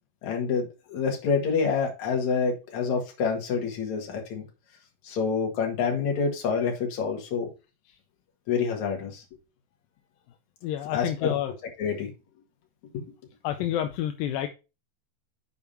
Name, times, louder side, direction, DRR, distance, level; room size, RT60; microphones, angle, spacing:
voice 1, 0.2-4.4 5.0-7.5 8.5-9.2 10.9-11.3 11.8-12.1 12.9-13.1, left 5 dB, 55° left, 1 dB, 3.0 m, -27 dB
voice 2, 10.6-11.5 13.4-14.5, left 11 dB, 80° left, 6 dB, 2.4 m, -29 dB
7.0 x 4.8 x 5.5 m, 0.29 s
omnidirectional pair, 4.1 m